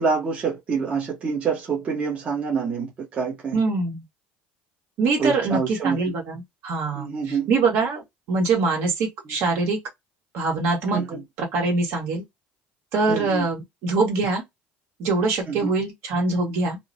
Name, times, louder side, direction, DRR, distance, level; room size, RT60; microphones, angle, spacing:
voice 1, 0.0-3.6 5.2-6.0 6.9-7.5 10.9-11.2 13.1-13.5 15.5-15.7, right 5 dB, 30° right, 0.8 m, -26 dB
voice 2, 3.5-4.0 5.0-9.8 10.3-11.0 11.4-12.2 12.9-14.4 15.0-16.8, right 3 dB, 60° right, 1.3 m, -24 dB
2.9 x 2.0 x 2.5 m
cardioid pair, 145°, 4 cm